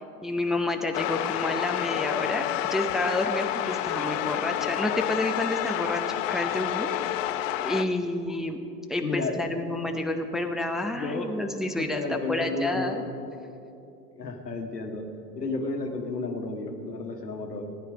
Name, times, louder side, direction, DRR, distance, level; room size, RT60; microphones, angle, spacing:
voice 1, 0.2-6.0 6.3-6.9 7.6-8.6 8.9-13.0, left 2 dB, ahead, 4 dB, 0.7 m, -29 dB
sound 1, 0.9-7.8, left 13 dB, 55° left, 0.6 m, -29 dB
voice 2, 9.0-9.5 10.9-11.4 11.8-13.0 14.2-15.1 15.3-17.6, left 3 dB, 90° left, 4 dB, 1.5 m, -32 dB
15.5 x 9.9 x 5.1 m, 2.6 s
hypercardioid pair, 85°, 47 cm